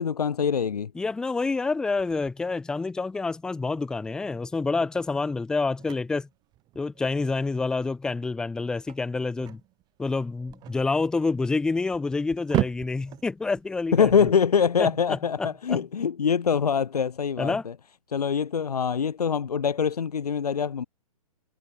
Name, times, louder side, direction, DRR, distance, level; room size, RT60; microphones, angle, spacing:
voice 1, 0.0-0.9 13.9-17.7 18.1-20.8, left 6 dB, 85° left, 1.2 m, -24 dB
voice 2, 0.9-6.3 6.8-9.6 10.0-14.3 14.8-15.8 17.4-17.7, left 3 dB, 5° left, 0.7 m, -28 dB
sound 1, 2.0-15.1, right 16 dB, 20° right, 3.4 m, -38 dB
hypercardioid pair, 150°, 19 cm